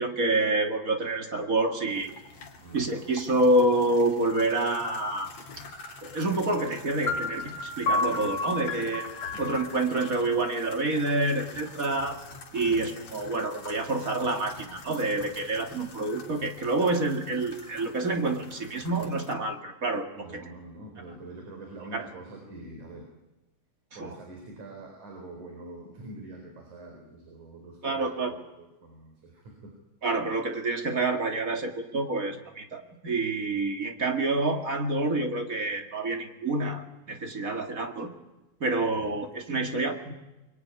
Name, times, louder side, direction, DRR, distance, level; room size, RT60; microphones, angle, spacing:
voice 1, 0.0-2.2 2.7-5.3 6.0-9.0 9.4-12.2 12.5-20.1 21.9-22.1 24.0-24.1 27.8-28.3 30.0-38.1 38.6-40.1, right 2 dB, 30° right, 5 dB, 2.3 m, -27 dB
sound 1, 1.9-19.3, left 4 dB, 65° left, 3.9 m, -47 dB
voice 2, 2.6-2.9 9.3-9.6 12.6-12.9 20.2-23.1 24.0-29.7 38.9-39.2, right 2 dB, 85° right, 2 dB, 5.7 m, -45 dB
sound 2, 7.1-10.9, left 3 dB, 50° left, 2.8 m, -32 dB
26.0 x 23.5 x 9.7 m, 0.99 s
omnidirectional pair, 3.4 m